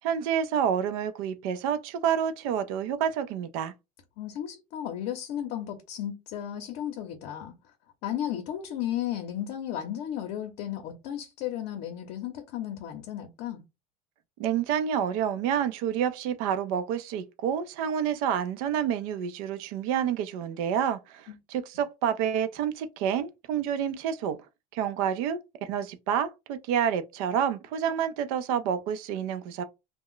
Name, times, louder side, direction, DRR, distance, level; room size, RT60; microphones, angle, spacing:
voice 1, 0.0-3.7 14.4-24.4 24.7-29.6, right 8 dB, 75° right, 0.5 m, -28 dB
voice 2, 4.2-7.5 8.0-13.6 21.3-21.4, left 11 dB, 60° left, 0.6 m, -34 dB
2.3 x 2.1 x 3.7 m
supercardioid pair, 135°, 19 cm